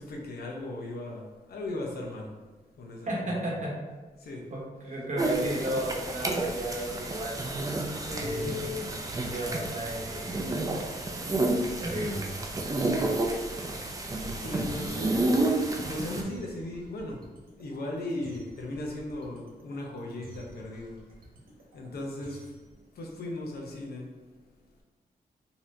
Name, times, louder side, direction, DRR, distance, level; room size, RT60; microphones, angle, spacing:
voice 1, 0.0-2.4 2.8-3.6 4.2-4.5 7.8-8.7 12.8-13.3 14.4-17.3 17.6-21.0 21.7-24.1, left 1 dB, 85° left, -1 dB, 0.8 m, -38 dB
voice 2, 3.1-3.7 4.5-7.3 8.1-8.9 9.3-10.8 11.8-12.2, equal, 50° right, -4 dB, 0.9 m, -33 dB
sound 1, 5.2-16.2, right 2 dB, 20° right, 0.4 m, -30 dB
sound 2, 7.2-22.7, right 2 dB, 70° right, 1.2 m, -51 dB
4.0 x 2.9 x 2.6 m, 1.3 s
wide cardioid pair, 120°, 16 cm